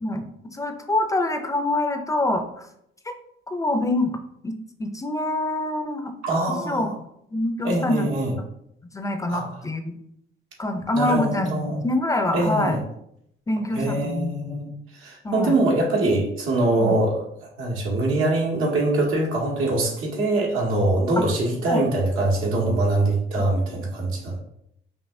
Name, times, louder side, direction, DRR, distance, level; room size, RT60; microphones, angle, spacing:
voice 1, 0.0-2.7 3.0-3.1 3.5-4.1 4.4-6.1 6.5-6.9 7.3-8.1 8.9-9.9 10.6-12.8 13.5-14.3 15.2-15.6 16.8-17.0 21.2-21.3 21.7-21.8, left 1 dB, 15° left, 6 dB, 0.4 m, -25 dB
voice 2, 6.2-6.9 7.6-8.3 9.3-9.5 10.9-11.8 12.3-12.8 13.7-17.2 17.6-24.4, right 2 dB, 90° right, -1 dB, 1.4 m, -23 dB
5.3 x 2.8 x 2.5 m, 0.74 s
cardioid pair, 120°, 21 cm